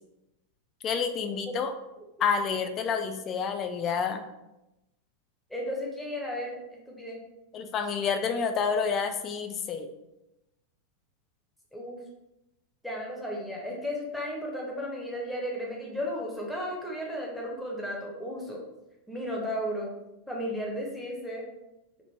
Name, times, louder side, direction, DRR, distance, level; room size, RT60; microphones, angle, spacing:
voice 1, 0.8-1.7 2.2-4.2 7.5-9.9, left 6 dB, 30° left, 7 dB, 0.3 m, -29 dB
voice 2, 5.5-7.2 11.7-12.0 12.8-18.6 19.1-19.9 20.3-21.4, equal, ahead, -3 dB, 0.8 m, -34 dB
3.1 x 2.1 x 3.2 m, 0.92 s
figure-of-eight pair, 90°, 0 cm